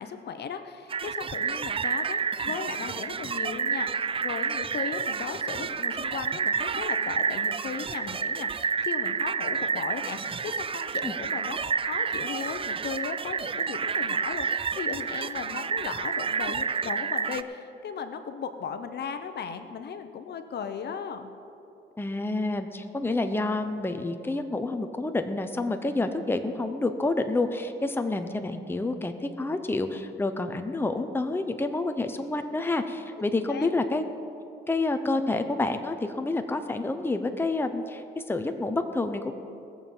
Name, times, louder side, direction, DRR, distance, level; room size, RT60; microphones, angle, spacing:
voice 1, 0.0-11.6 11.8-21.3 33.5-33.7, left 6 dB, 55° left, 8 dB, 0.9 m, -36 dB
sound 1, 0.9-17.4, right 6 dB, 30° right, 0.4 m, -29 dB
voice 2, 22.0-34.0 34.7-39.3, left 2 dB, 10° left, 7 dB, 0.8 m, -28 dB
19.5 x 7.2 x 5.6 m, 2.7 s
cardioid pair, 90°, 20 cm